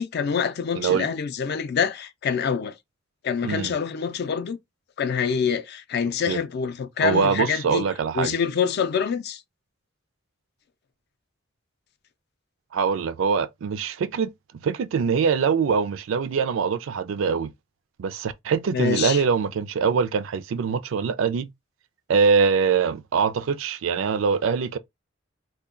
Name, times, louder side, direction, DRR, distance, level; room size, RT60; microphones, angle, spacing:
voice 1, 0.0-2.8 3.2-4.6 5.0-7.9 8.1-9.4 18.7-19.2, left 6 dB, 55° left, 0.4 m, -26 dB
voice 2, 0.7-1.1 3.4-3.7 6.3-6.4 7.0-8.3 12.7-14.3 14.6-17.5 18.0-21.5 22.1-24.8, right 6 dB, 75° right, 0.3 m, -23 dB
2.2 x 2.2 x 3.6 m
head